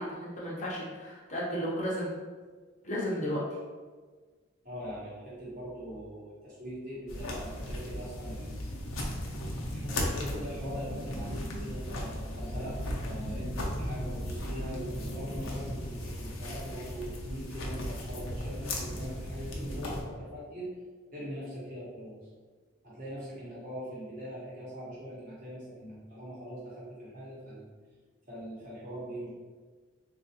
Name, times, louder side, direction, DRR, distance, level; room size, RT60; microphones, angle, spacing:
voice 1, 0.0-2.1 2.8-3.4, equal, 35° left, -5 dB, 0.6 m, -33 dB
voice 2, 4.6-8.5 9.7-20.7 21.1-22.2 22.8-27.7 28.3-29.3, equal, 40° right, -7 dB, 1.0 m, -42 dB
sound 1, 7.1-20.0, equal, 75° left, 0.6 m, -36 dB
3.6 x 2.4 x 2.7 m, 1.5 s
head